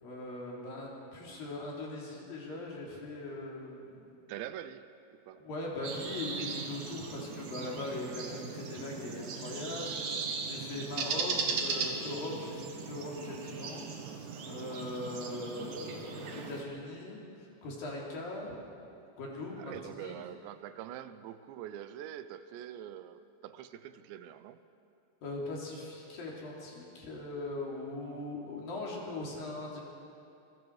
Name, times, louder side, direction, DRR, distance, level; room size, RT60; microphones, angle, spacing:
voice 1, 0.0-4.1 5.3-13.9 14.5-17.2 17.6-18.6 19.2-20.2 25.2-29.8, left 2 dB, 55° left, -3 dB, 4.8 m, -40 dB
voice 2, 4.3-4.9 5.3-5.5 19.6-24.6, right 11 dB, 85° right, 12 dB, 2.9 m, -44 dB
sound 1, 5.8-16.6, right 5 dB, 60° right, 2.7 m, -38 dB
27.0 x 23.0 x 4.8 m, 2.7 s
omnidirectional pair, 5.1 m